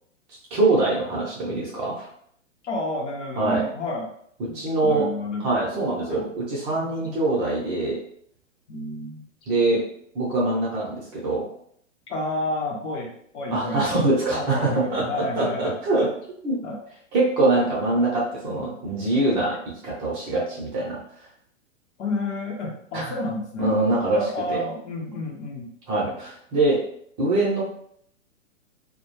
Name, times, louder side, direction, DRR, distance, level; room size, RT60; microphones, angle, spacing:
voice 1, 0.5-2.1 3.4-3.7 4.4-5.1 5.4-8.0 9.5-9.9 10.1-11.5 13.5-16.1 16.4-16.6 17.1-21.0 22.9-23.2 23.6-24.2 24.5-24.6 25.9-26.9 27.2-27.6, right 2 dB, 30° right, -4 dB, 0.7 m, -23 dB
voice 2, 2.6-4.1 4.5-6.3 6.7-7.1 8.7-9.2 12.1-15.8 16.6-16.8 18.4-18.8 22.0-23.7 24.1-25.7, left 2 dB, 60° left, -1 dB, 0.8 m, -31 dB
2.2 x 2.1 x 3.0 m, 0.66 s
hypercardioid pair, 120°, 38 cm